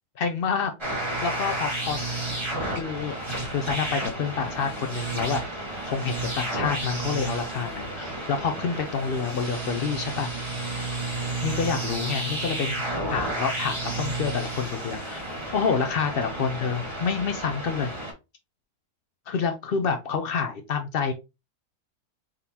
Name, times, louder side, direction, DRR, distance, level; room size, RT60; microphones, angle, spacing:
voice 1, 0.2-0.7 1.2-2.0 2.7-3.2 3.5-5.4 5.9-10.3 11.4-12.7 13.1-17.9 19.3-21.1, left 6 dB, 85° left, 6 dB, 0.5 m, -28 dB
sound 1, 0.8-18.1, right 2 dB, 20° right, 1.6 m, -31 dB
3.7 x 3.7 x 2.8 m, 0.26 s
omnidirectional pair, 1.6 m